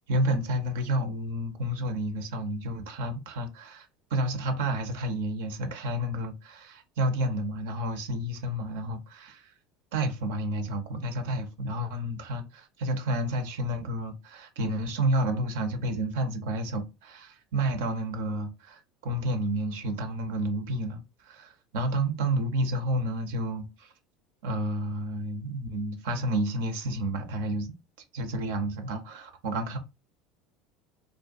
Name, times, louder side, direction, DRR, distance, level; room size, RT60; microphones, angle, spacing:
voice 1, 0.1-9.5 9.9-23.9 24.4-27.8 28.1-29.8, right 1 dB, 75° right, 0.4 m, -30 dB
2.5 x 2.2 x 2.3 m
hypercardioid pair, 80°, 0 cm